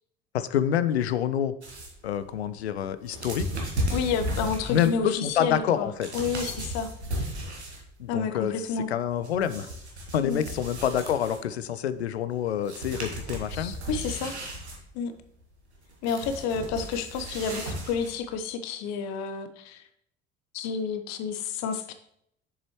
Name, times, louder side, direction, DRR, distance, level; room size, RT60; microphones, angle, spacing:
voice 1, 0.3-1.6 2.0-3.6 4.7-6.1 8.0-9.7 10.1-13.7, left 9 dB, 80° left, 14 dB, 0.5 m, -27 dB
sound 1, 1.6-8.0 8.3-11.6 12.3-12.4 12.6-18.4, right 1 dB, 85° right, 1.4 m, -35 dB
voice 2, 3.9-6.9 8.1-8.9 10.2-10.4 13.5-14.3 14.9-15.1 16.0-19.8 20.5-21.9, left 6 dB, 55° left, 9 dB, 0.9 m, -30 dB
7.6 x 6.8 x 3.0 m, 0.71 s
figure-of-eight pair, 60°, 32 cm